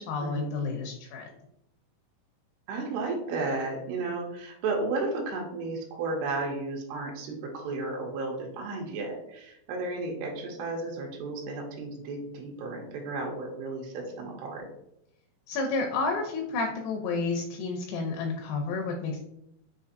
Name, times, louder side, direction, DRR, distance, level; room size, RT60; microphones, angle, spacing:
voice 1, 0.0-1.4 15.5-19.2, left 3 dB, 85° left, 1 dB, 2.6 m, -30 dB
voice 2, 2.7-14.7, right 3 dB, 80° right, 0 dB, 2.6 m, -33 dB
6.5 x 2.7 x 2.5 m, 0.79 s
omnidirectional pair, 4.5 m